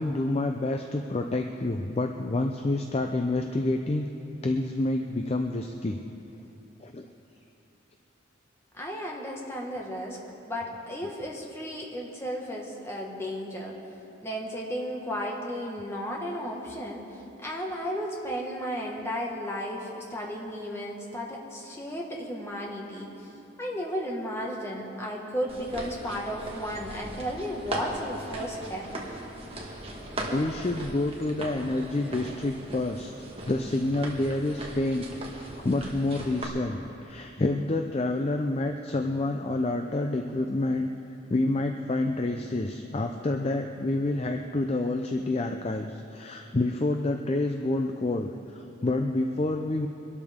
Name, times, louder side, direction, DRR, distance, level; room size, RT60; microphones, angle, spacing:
voice 1, 0.0-4.1 4.4-6.0 6.8-7.1 30.3-33.1 33.5-35.1 35.3-40.9 41.3-49.9, left 2 dB, 30° left, 5 dB, 0.4 m, -28 dB
voice 2, 8.7-10.2 10.5-13.7 14.2-23.3 23.6-28.9, equal, 10° left, -2 dB, 1.6 m, -34 dB
sound 1, 25.5-36.4, right 1 dB, 30° right, 1.5 m, -39 dB
23.5 x 12.5 x 3.6 m, 2.8 s
head